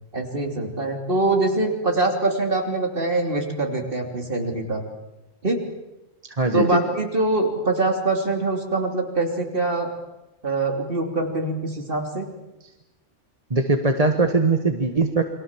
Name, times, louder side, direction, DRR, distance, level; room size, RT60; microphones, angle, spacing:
voice 1, 0.1-4.8 5.4-5.6 6.5-9.9 10.4-12.3, right 2 dB, 50° right, 3 dB, 3.3 m, -24 dB
voice 2, 6.4-6.8 13.5-15.2, right 3 dB, 30° right, 6 dB, 1.5 m, -20 dB
29.5 x 23.0 x 7.4 m, 1.0 s
omnidirectional pair, 1.2 m